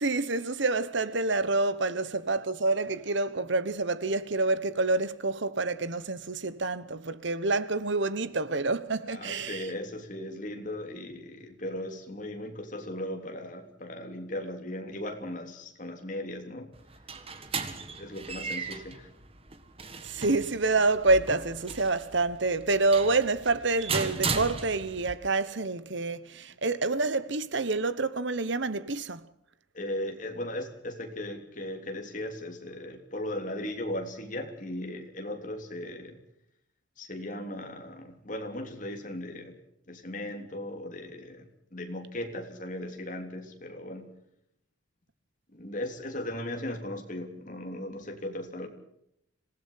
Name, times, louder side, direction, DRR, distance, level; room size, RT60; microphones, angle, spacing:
voice 1, 0.0-9.7 20.0-29.3, right 3 dB, 65° right, 1.2 m, -27 dB
voice 2, 9.1-16.7 17.5-17.6 18.0-19.1 29.7-36.2 37.0-39.6 39.9-44.2 45.5-48.7, left 1 dB, 40° left, 3.3 m, -37 dB
sound 1, 16.7-25.1, right 4 dB, 30° right, 1.8 m, -36 dB
26.5 x 17.5 x 5.8 m
head